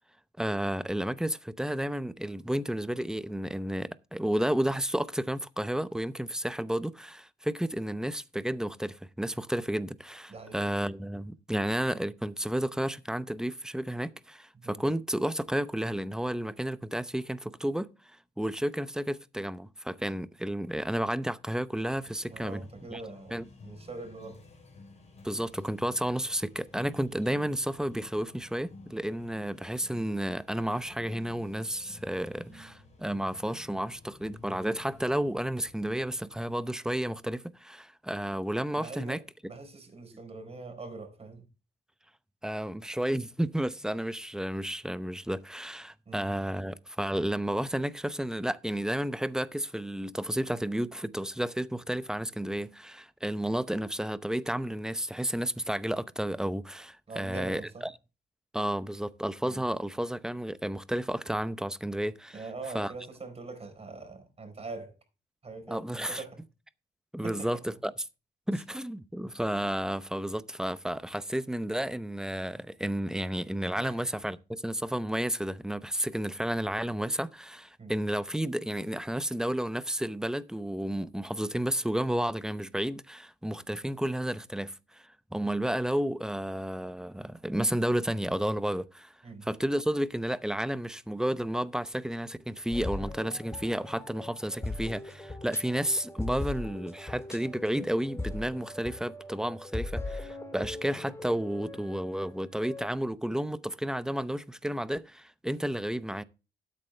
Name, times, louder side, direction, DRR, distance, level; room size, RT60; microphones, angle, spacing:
voice 1, 0.4-17.9 18.4-22.6 22.9-23.0 23.3-23.4 25.2-39.2 42.4-57.9 58.5-62.4 62.7-62.9 65.7-66.2 67.1-67.9 68.5-89.1 89.4-106.2, right 1 dB, 5° right, 0.7 m, -32 dB
sound 1, 21.7-36.4, left 3 dB, 35° left, 5.4 m, -53 dB
voice 2, 22.3-24.4 38.7-41.4 46.1-46.3 57.1-57.9 59.4-59.6 62.3-65.0 65.4-66.4 67.2-67.5 73.8-74.0 77.8-77.9 89.2-89.5, right 3 dB, 30° right, 4.1 m, -43 dB
sound 2, 92.7-102.9, left 2 dB, 15° left, 1.8 m, -39 dB
12.0 x 8.5 x 3.3 m
cardioid pair, 90°, 20 cm